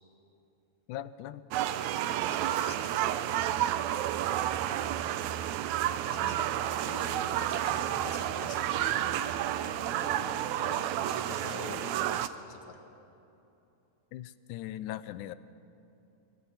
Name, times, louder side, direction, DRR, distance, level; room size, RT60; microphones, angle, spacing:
voice 1, 0.9-1.4 14.1-15.4, left 13 dB, 80° left, 15 dB, 2.1 m, -39 dB
sound 1, 1.5-12.3, right 12 dB, 75° right, 1.9 m, -30 dB
voice 2, 2.3-3.2 6.0-6.5 6.8-12.8, left 5 dB, 50° left, 4 dB, 2.3 m, -46 dB
24.0 x 16.5 x 8.1 m, 2.8 s
omnidirectional pair, 3.6 m